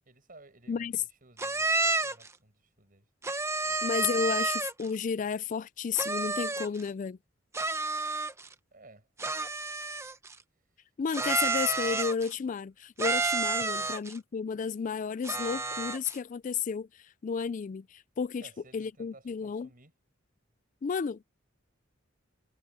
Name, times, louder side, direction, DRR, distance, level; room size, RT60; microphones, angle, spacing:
voice 1, 0.1-3.1 3.6-3.8 8.7-9.1 13.6-14.0 18.4-19.9, right 2 dB, 45° right, 7.6 m, -56 dB
voice 2, 0.7-1.0 3.8-7.2 11.0-19.7 20.8-21.2, left 6 dB, 40° left, 0.3 m, -32 dB
sound 1, 1.4-2.3 3.2-4.9 6.0-6.8 7.5-8.5 9.2-10.3 11.1-12.3 13.0-14.2 15.2-16.2, right 3 dB, 15° right, 0.9 m, -30 dB
head